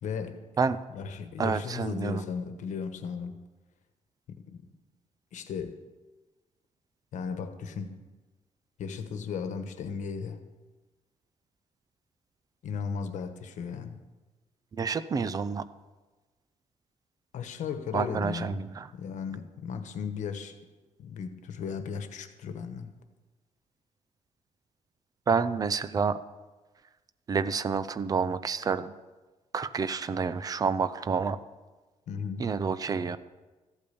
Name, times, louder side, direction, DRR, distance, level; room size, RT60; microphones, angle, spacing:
voice 1, 0.0-0.4 0.9-3.4 4.3-4.6 5.3-5.8 7.1-8.0 8.8-10.4 12.6-14.0 17.3-18.6 18.9-20.5 21.0-22.9 32.1-32.5, left 6 dB, 90° left, 9 dB, 1.2 m, -36 dB
voice 2, 1.4-2.2 14.7-15.7 17.9-18.9 25.3-26.2 27.3-28.9 29.5-31.4 32.4-33.2, right 5 dB, 30° right, 13 dB, 0.5 m, -28 dB
14.5 x 8.6 x 7.0 m, 1.2 s
wide cardioid pair, 165°, 12 cm